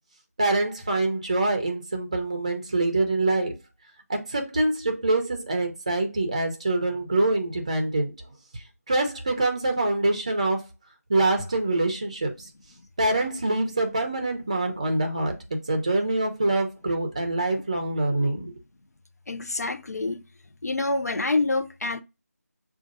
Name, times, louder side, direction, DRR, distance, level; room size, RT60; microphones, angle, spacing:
voice 1, 0.4-3.5 4.1-8.1 8.5-10.6 11.1-12.5 13.0-18.5, right 2 dB, 25° right, 0.6 m, -25 dB
voice 2, 19.3-20.2 20.6-22.0, left 3 dB, 70° left, 0.5 m, -27 dB
6.3 x 2.4 x 2.5 m
figure-of-eight pair, 170°, 9 cm